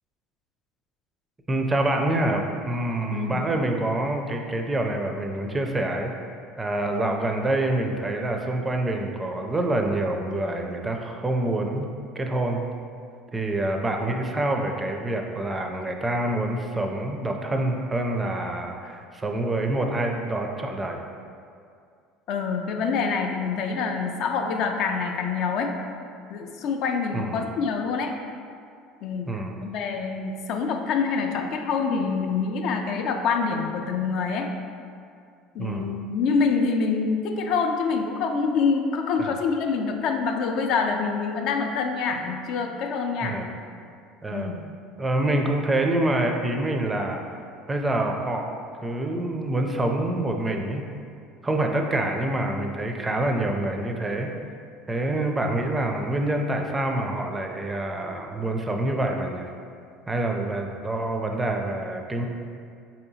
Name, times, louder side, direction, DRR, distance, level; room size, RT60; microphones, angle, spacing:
voice 1, 1.5-6.1 6.6-11.9 12.2-12.7 13.3-21.0 27.1-27.4 29.3-29.5 35.6-35.9 39.2-39.3 43.2-43.5 44.2-44.5 45.0-47.2 47.7-48.6 48.8-50.8 51.4-54.3 54.9-59.5 60.1-62.3, right 1 dB, 20° right, 3 dB, 0.4 m, -26 dB
voice 2, 3.1-3.5 22.3-25.7 26.3-28.1 29.0-34.5 35.5-43.4 44.3-44.6, left 5 dB, 60° left, 4 dB, 0.3 m, -26 dB
4.1 x 2.8 x 2.7 m, 2.3 s
hypercardioid pair, 80°, 0 cm